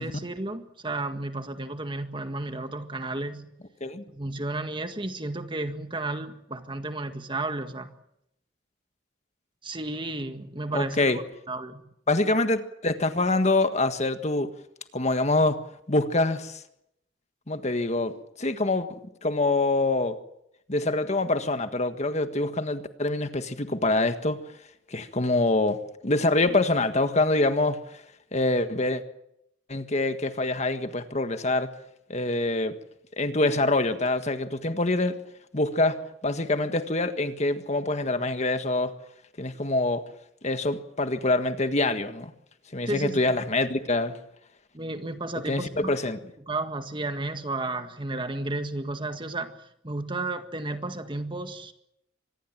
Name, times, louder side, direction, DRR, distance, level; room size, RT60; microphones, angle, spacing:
voice 1, 0.0-3.5 4.1-7.9 9.6-11.2 11.5-11.8 42.9-43.2 44.7-45.9 46.4-49.6 49.8-51.7, right 2 dB, 25° right, 8 dB, 1.8 m, -32 dB
voice 2, 10.7-11.2 12.1-14.5 14.9-15.6 15.9-16.6 17.5-18.1 18.4-20.2 20.7-24.4 24.9-27.8 28.3-29.0 29.7-31.7 32.1-32.7 33.2-35.2 35.5-38.9 39.4-40.0 40.4-42.3 42.7-44.2 45.5-46.2, left 2 dB, 40° left, 9 dB, 1.6 m, -25 dB
25.5 x 20.0 x 7.5 m, 0.78 s
head